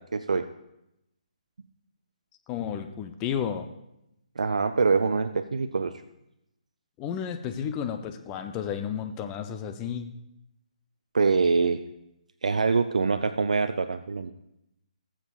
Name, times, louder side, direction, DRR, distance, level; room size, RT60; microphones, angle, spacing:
voice 1, 0.1-0.4 4.4-5.9 11.1-11.8 12.4-14.3, right 4 dB, 65° right, 9 dB, 0.4 m, -24 dB
voice 2, 2.5-3.7 7.0-10.1, left 8 dB, 20° left, 7 dB, 0.6 m, -32 dB
19.0 x 7.3 x 2.4 m, 0.86 s
figure-of-eight pair, 140°, 4 cm